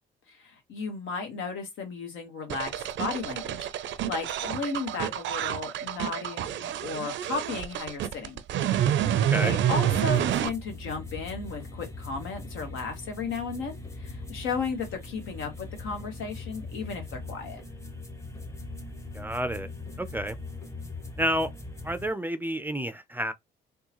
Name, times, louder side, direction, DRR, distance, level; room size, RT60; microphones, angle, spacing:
voice 1, 0.3-8.4 9.4-17.6, left 4 dB, 80° left, 1.3 m, -35 dB
sound 1, 2.5-10.5, right 10 dB, 70° right, 0.5 m, -28 dB
sound 2, 10.1-22.1, left 2 dB, 15° left, 0.8 m, -41 dB
voice 2, 19.1-19.7 20.0-20.4 21.2-21.5 21.8-23.3, equal, 10° right, 0.4 m, -29 dB
3.6 x 2.3 x 2.9 m
cardioid pair, 90°, 20 cm